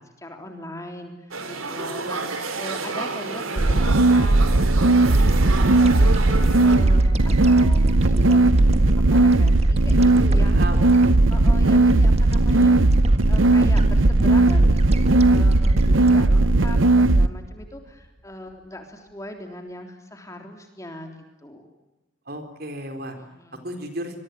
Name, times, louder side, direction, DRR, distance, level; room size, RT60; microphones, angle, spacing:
voice 1, 0.2-5.1 5.6-6.3 6.6-10.9 11.3-12.8 13.3-21.1 21.4-21.7 23.2-23.7, left 1 dB, 15° left, 4 dB, 3.5 m, -39 dB
sound 1, 1.3-6.8, right 3 dB, 90° right, 3.9 m, -30 dB
sound 2, 3.6-17.3, right 2 dB, 75° right, 0.9 m, -17 dB
sound 3, 5.1-17.6, right 1 dB, 30° right, 1.6 m, -27 dB
voice 2, 10.4-10.8 22.3-23.2 23.6-24.2, right 1 dB, 50° right, 7 dB, 4.1 m, -33 dB
26.5 x 22.5 x 9.4 m, 1.0 s
head